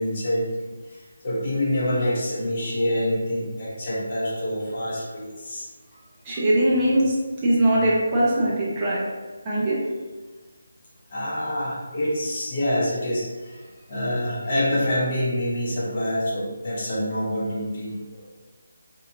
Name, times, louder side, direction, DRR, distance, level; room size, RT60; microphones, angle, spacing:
voice 1, 0.0-5.7 11.1-13.6 13.9-18.0, left 1 dB, 40° left, -5 dB, 0.9 m, -26 dB
voice 2, 6.2-7.2 7.4-9.0 9.4-9.8 18.0-18.2, right 1 dB, 20° right, -7 dB, 0.9 m, -21 dB
4.0 x 2.8 x 2.6 m, 1.3 s
figure-of-eight pair, 160°, 0 cm